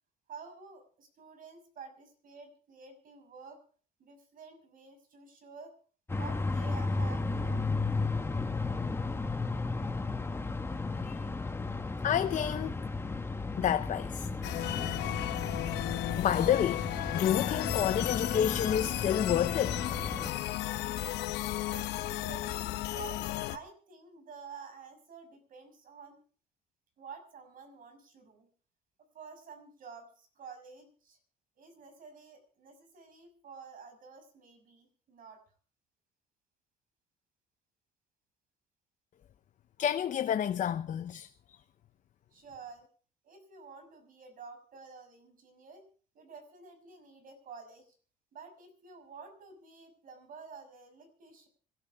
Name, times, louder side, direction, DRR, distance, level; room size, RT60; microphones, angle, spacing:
voice 1, 0.3-3.6 4.0-5.7 6.1-7.9 21.7-26.2 27.0-28.5 29.1-31.2 31.6-35.5 42.3-42.9 43.2-45.8 46.1-47.9 48.3-51.5, right 5 dB, 55° right, 6.2 m, -50 dB
sound 1, 6.1-20.3, left 3 dB, 15° left, 1.2 m, -34 dB
voice 2, 12.0-12.8 13.6-14.3 15.1-15.4 16.2-16.9 17.1-19.8 39.8-41.6, left 10 dB, 45° left, 0.7 m, -30 dB
sound 2, 14.4-23.6, left 15 dB, 80° left, 1.0 m, -34 dB
26.0 x 13.0 x 3.5 m
cardioid pair, 110°, 17 cm